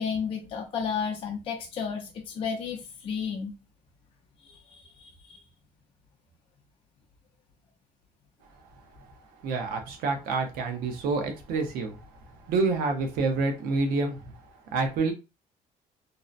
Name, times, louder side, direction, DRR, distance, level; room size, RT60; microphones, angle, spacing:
voice 1, 0.0-3.5 4.4-5.4, left 6 dB, 40° left, 0.5 m, -33 dB
voice 2, 9.4-12.0 12.5-14.2 14.7-15.1, right 3 dB, 85° right, 0.7 m, -27 dB
2.7 x 2.0 x 2.4 m
cardioid pair, 135°, 15 cm